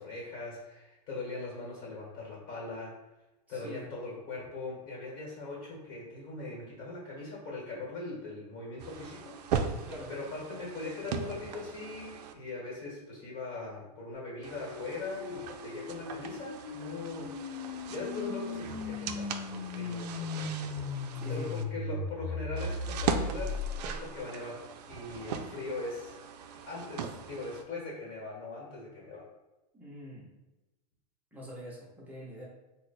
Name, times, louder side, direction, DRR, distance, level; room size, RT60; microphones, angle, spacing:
voice 1, 0.0-3.0 3.5-9.4 10.1-17.4 17.6-26.2 26.7-29.3, left 3 dB, 40° left, -4 dB, 1.2 m, -41 dB
voice 2, 3.5-3.9 9.8-10.1 21.2-21.5 29.7-30.3 31.3-32.5, equal, 5° right, -4 dB, 0.7 m, -45 dB
sound 1, 8.8-12.3 14.4-21.6 22.6-27.6, right 7 dB, 70° right, 0.4 m, -39 dB
sound 2, 14.1-24.2, left 4 dB, 60° left, 0.5 m, -38 dB
3.0 x 2.1 x 4.1 m, 1.0 s
supercardioid pair, 150°, 21 cm